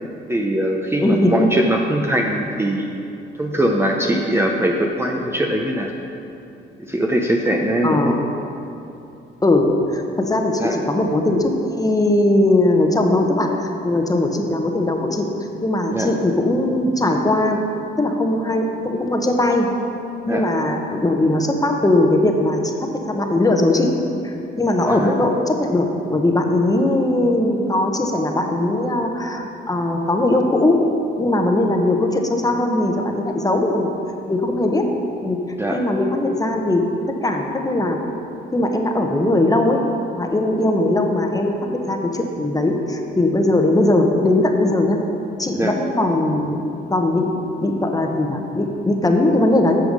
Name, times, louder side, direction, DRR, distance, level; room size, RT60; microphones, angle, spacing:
voice 1, 0.3-2.9 3.4-5.9 6.8-8.2 10.6-10.8 15.9-16.1 20.3-20.5 24.9-25.2 35.6-35.8 45.5-45.8, right 1 dB, 10° right, 1 dB, 0.7 m, -21 dB
voice 2, 1.0-1.5 7.8-8.2 9.4-15.3 15.6-17.6 18.0-19.7 20.3-23.9 24.2-30.8 31.2-33.9 34.3-34.8 35.2-35.4 35.7-36.8 37.2-38.0 38.5-39.8 40.2-45.0 45.4-46.6 46.9-47.4 47.6-49.8, left 1 dB, 20° left, 2 dB, 1.1 m, -19 dB
9.5 x 6.9 x 5.4 m, 2.8 s
cardioid pair, 90°, 20 cm